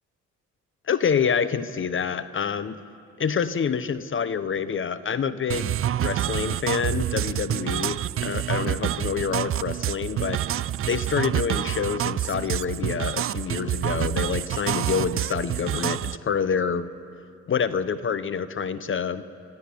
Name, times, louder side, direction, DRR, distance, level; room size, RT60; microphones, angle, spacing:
voice 1, 0.9-2.8 3.2-16.9 17.5-19.2, left 6 dB, 40° left, 13 dB, 0.9 m, -27 dB
sound 1, 5.5-16.2, right 12 dB, 45° right, 0.5 m, -27 dB
27.5 x 13.5 x 9.7 m, 2.4 s
cardioid pair, 90°, 30 cm